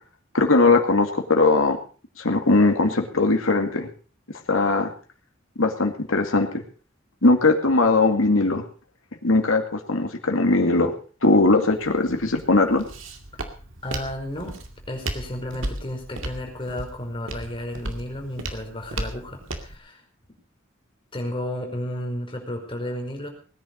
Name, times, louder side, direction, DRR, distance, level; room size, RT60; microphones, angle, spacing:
voice 1, 0.3-1.8 2.2-3.9 4.5-4.9 5.6-6.5 7.2-8.6 9.2-10.9 11.2-12.8, left 3 dB, 85° left, 4 dB, 2.3 m, -19 dB
Walk footsteps, 11.7-19.8, right 2 dB, 70° right, 2.3 m, -36 dB
voice 2, 13.8-14.6 14.9-20.0 21.1-23.3, left 1 dB, 25° left, 2 dB, 4.6 m, -32 dB
19.5 x 10.5 x 5.3 m, 0.40 s
head